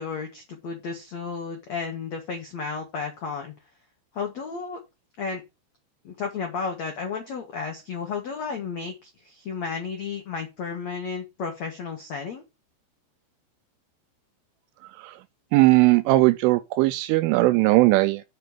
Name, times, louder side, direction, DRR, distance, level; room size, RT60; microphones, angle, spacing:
voice 1, 0.0-3.5 4.1-4.8 5.2-5.4 6.0-12.4, left 5 dB, 75° left, 1.6 m, -33 dB
voice 2, 15.5-18.2, right 20 dB, 85° right, 2.9 m, -19 dB
6.9 x 5.2 x 6.7 m
omnidirectional pair, 6.0 m